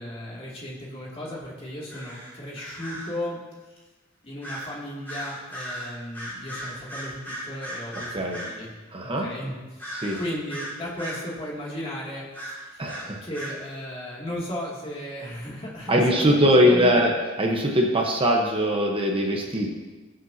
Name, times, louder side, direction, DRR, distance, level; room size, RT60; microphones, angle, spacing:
voice 1, 0.0-3.4 4.2-8.7 9.0-9.5 10.1-12.9 13.2-17.0, equal, 30° left, -4 dB, 2.6 m, -35 dB
sound 1, 1.9-3.2 4.4-4.8 5.1-8.6 9.8-11.3 12.3-13.6, right 1 dB, 10° left, 4.1 m, -37 dB
voice 2, 8.1-8.4 8.9-9.3 9.9-10.2 12.8-13.2 15.9-17.1 17.4-19.7, equal, 25° right, 0 dB, 1.1 m, -21 dB
21.5 x 7.7 x 2.8 m, 1.2 s
head